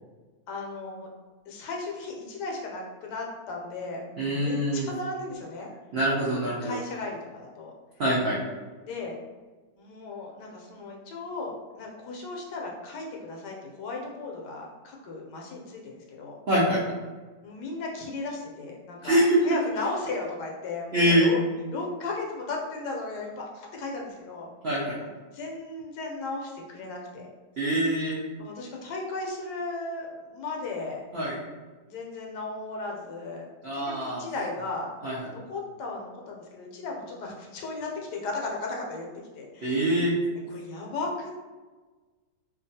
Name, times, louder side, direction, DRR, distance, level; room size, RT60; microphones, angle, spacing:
voice 1, 0.5-1.1 1.5-5.7 6.3-7.7 8.8-9.1 9.7-16.4 17.4-21.4 21.7-24.5 25.3-27.3 28.4-31.0 31.8-33.4 33.7-34.9 35.3-39.9 40.5-41.3, left 3 dB, 75° left, -1 dB, 1.1 m, -36 dB
voice 2, 4.2-4.9 5.9-6.8 8.0-8.4 16.5-16.8 19.0-19.4 20.9-21.3 24.6-25.0 27.6-28.2 31.1-31.4 33.6-34.3 35.0-35.1 39.6-40.1, right 1 dB, 85° right, -7 dB, 0.5 m, -24 dB
2.8 x 2.3 x 2.6 m, 1.3 s
omnidirectional pair, 1.8 m